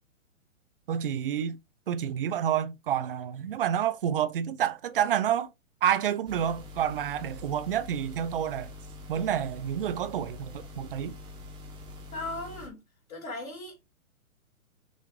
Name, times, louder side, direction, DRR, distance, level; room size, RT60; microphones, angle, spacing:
voice 1, 0.9-1.6 1.9-5.5 5.8-8.7 9.1-11.1, right 9 dB, 40° right, 0.5 m, -29 dB
sound 1, 6.3-12.7, left 2 dB, 10° right, 1.0 m, -45 dB
voice 2, 12.1-12.8 13.1-13.8, left 2 dB, 70° left, 3.1 m, -37 dB
6.0 x 2.5 x 3.0 m
hypercardioid pair, 135°, 42 cm